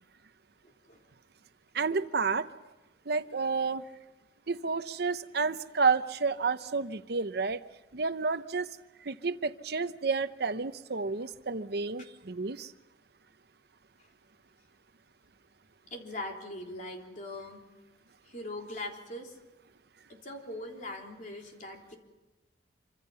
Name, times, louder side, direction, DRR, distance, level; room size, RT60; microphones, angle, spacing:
voice 1, 0.6-1.0 14.0-14.1 15.9-17.7 18.2-19.4 20.1-22.0, left 1 dB, 45° left, 1 dB, 3.5 m, -41 dB
voice 2, 1.7-2.5 3.1-3.8 4.5-7.6 7.9-8.7 9.0-12.7, right 4 dB, 65° right, 11 dB, 0.8 m, -30 dB
26.0 x 25.5 x 5.7 m, 1.1 s
head